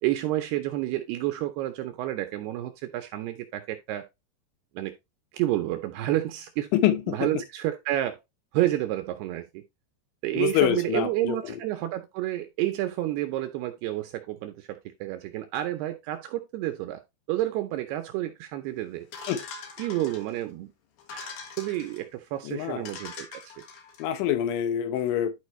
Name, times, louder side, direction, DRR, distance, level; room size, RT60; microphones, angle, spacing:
voice 1, 0.0-4.1 4.8-4.9 5.3-6.7 7.1-8.2 8.5-9.6 10.2-17.0 17.3-19.1 19.8-20.7 21.1-23.5, right 14 dB, 80° right, 2.4 m, -30 dB
voice 2, 6.7-7.3 10.4-11.6 19.3-19.4 22.4-22.9 24.0-25.3, left 11 dB, 85° left, 3.4 m, -26 dB
sound 1, 19.1-20.4 21.0-22.0 22.5-22.6 22.8-24.1, left 5 dB, 60° left, 3.1 m, -42 dB
11.5 x 4.9 x 3.1 m
omnidirectional pair, 5.3 m